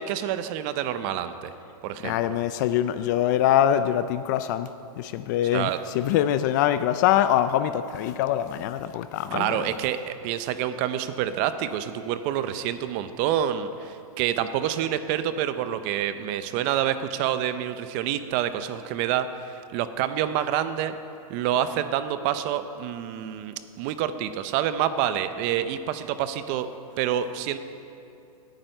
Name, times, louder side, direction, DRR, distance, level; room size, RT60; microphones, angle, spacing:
voice 1, 0.0-1.5 1.8-2.4 5.5-5.8 9.3-19.3 19.7-20.9 21.3-26.7 27.0-27.6, right 10 dB, 30° right, 11 dB, 0.6 m, -27 dB
voice 2, 2.0-4.7 5.0-9.7, left 11 dB, 30° left, 12 dB, 0.3 m, -24 dB
18.0 x 9.1 x 5.5 m, 2.6 s
hypercardioid pair, 155°, 19 cm